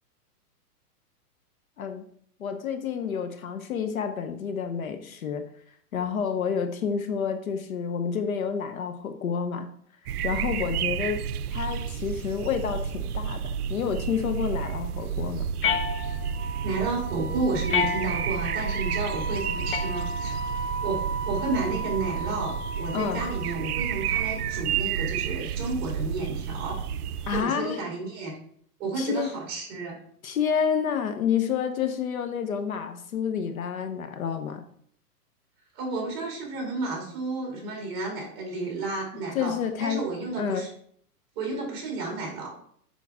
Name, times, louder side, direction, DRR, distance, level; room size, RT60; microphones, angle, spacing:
voice 1, 2.4-5.5 5.9-9.7 10.2-11.2 11.5-15.5 22.9-23.2 27.3-27.8 29.0-29.3 30.2-34.6 39.3-40.0 40.4-40.7, left 7 dB, 60° left, 8 dB, 0.9 m, -29 dB
sound 1, 10.1-27.4, right 8 dB, 70° right, 0.6 m, -31 dB
sound 2, 15.6-16.5 17.7-18.5 19.7-20.5, left 7 dB, 35° left, 0.6 m, -29 dB
Wind instrument woodwind instrument, 16.3-24.6, right 2 dB, 45° right, 1.3 m, -36 dB
voice 2, 16.6-20.5 20.8-26.8 27.3-28.3 28.8-30.0 35.7-40.7 41.4-42.5, right 3 dB, 20° right, -1 dB, 2.4 m, -32 dB
7.2 x 5.8 x 3.5 m, 0.63 s
hypercardioid pair, 170°, 47 cm